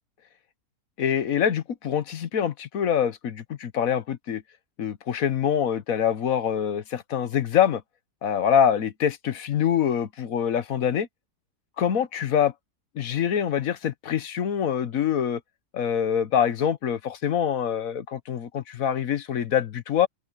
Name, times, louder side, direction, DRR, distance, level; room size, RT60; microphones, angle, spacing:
voice 1, 1.0-4.4 4.8-7.8 8.2-11.1 11.8-12.5 12.9-15.4 15.7-20.1, left 8 dB, 60° left, 1.3 m, -25 dB
open air
omnidirectional pair, 1.7 m